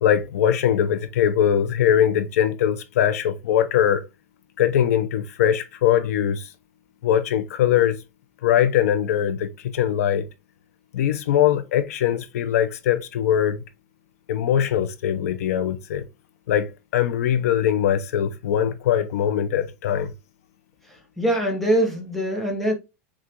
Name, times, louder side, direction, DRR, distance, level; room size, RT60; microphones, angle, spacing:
voice 1, 0.0-4.0 4.6-6.5 7.0-8.0 8.4-10.2 10.9-13.6 14.3-16.0 16.5-20.1, left 10 dB, 90° left, 0.7 m, -21 dB
voice 2, 21.2-22.7, right 1 dB, ahead, 1.0 m, -22 dB
6.4 x 2.4 x 2.9 m
supercardioid pair, 165°, 8 cm